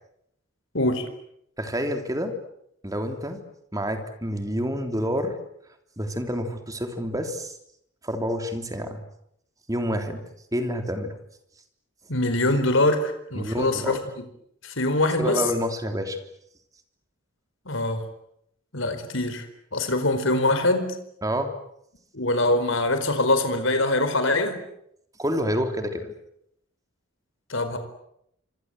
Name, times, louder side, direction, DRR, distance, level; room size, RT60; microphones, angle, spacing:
voice 1, 0.7-1.0 12.1-14.0 14.6-15.4 17.7-18.0 18.7-19.5 19.7-20.9 22.1-24.6 27.5-27.8, left 2 dB, 65° left, 9 dB, 4.6 m, -23 dB
voice 2, 1.6-2.3 2.8-3.4 3.7-5.3 6.0-7.6 8.0-9.0 9.7-10.2 10.5-11.1 13.3-14.0 15.2-16.2 21.2-21.5 25.2-26.1, equal, 15° right, 6 dB, 3.3 m, -28 dB
26.5 x 26.0 x 7.9 m, 0.75 s
head